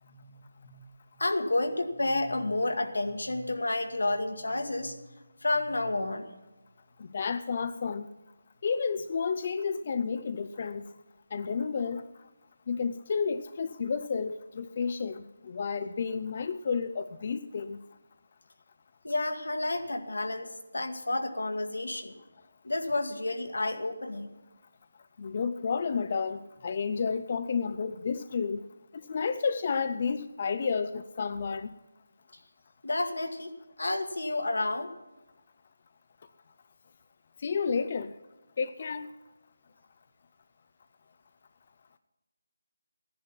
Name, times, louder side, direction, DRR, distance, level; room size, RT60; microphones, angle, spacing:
voice 1, 0.0-0.9 1.2-5.0 5.4-6.3 19.0-22.2 22.6-24.3 32.3-32.4 32.8-34.9, left 2 dB, 85° left, 6 dB, 1.7 m, -31 dB
voice 2, 7.0-8.1 8.6-10.8 11.3-12.0 12.7-17.8 25.2-28.6 28.9-31.7 37.4-38.1 38.6-39.1, left 5 dB, 40° left, 11 dB, 0.5 m, -31 dB
15.0 x 10.5 x 5.6 m, 1.1 s
figure-of-eight pair, 165°, 0 cm